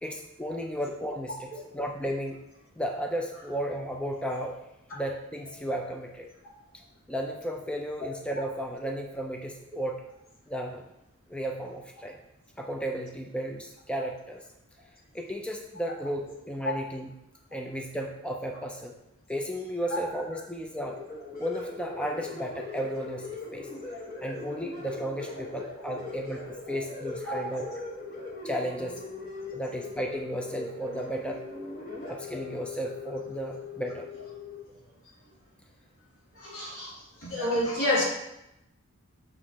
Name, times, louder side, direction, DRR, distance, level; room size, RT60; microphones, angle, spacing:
voice 1, 0.0-2.4 2.8-4.6 4.9-6.3 7.1-10.0 10.5-10.9 11.3-12.2 12.6-14.4 15.1-17.1 17.5-19.0 19.3-21.0 21.4-23.7 24.2-27.6 28.4-29.0 29.5-31.4 32.1-34.1, equal, 5° left, 1 dB, 0.5 m, -34 dB
sound 1, 20.8-34.6, left 3 dB, 40° left, 1.3 m, -40 dB
voice 2, 36.4-36.9 37.2-38.0, left 1 dB, 70° left, -6 dB, 2.8 m, -29 dB
7.9 x 6.0 x 2.9 m, 0.85 s
head